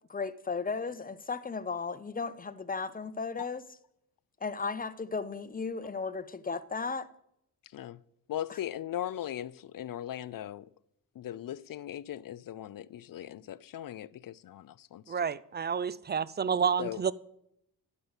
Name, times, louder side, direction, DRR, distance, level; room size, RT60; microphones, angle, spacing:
voice 1, 0.1-3.6 4.4-7.1 8.5-8.6, left 4 dB, 20° left, 0.6 m, -35 dB
voice 2, 8.3-10.7 11.2-15.1 16.8-17.0, left 11 dB, 60° left, 0.5 m, -39 dB
voice 3, 15.1-17.1, right 7 dB, 25° right, 0.4 m, -29 dB
12.0 x 5.4 x 8.0 m
cardioid pair, 90°, 39 cm